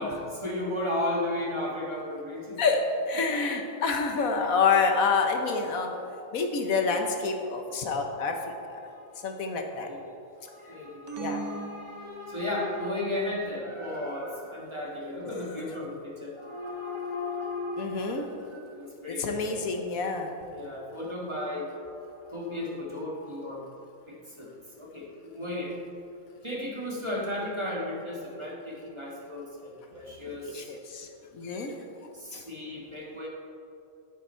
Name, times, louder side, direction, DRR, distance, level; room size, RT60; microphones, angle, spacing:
voice 1, 0.0-2.6 3.1-3.4 7.7-7.8 8.3-9.3 9.8-10.0 10.4-19.6 20.5-23.6 24.1-24.5 24.8-25.7 26.4-30.7 32.1-33.3, left 1 dB, 20° right, -4 dB, 1.6 m, -35 dB
voice 2, 2.6-5.9 6.3-8.8 9.2-9.9 11.1-11.4 17.8-18.3 19.2-20.3 30.3-31.1 31.3-31.8 32.3-32.4, left 4 dB, 70° left, 4 dB, 1.3 m, -28 dB
sound 1, 11.1-12.7, right 3 dB, 35° right, 0.4 m, -39 dB
10.5 x 9.1 x 4.4 m, 2.6 s
omnidirectional pair, 1.6 m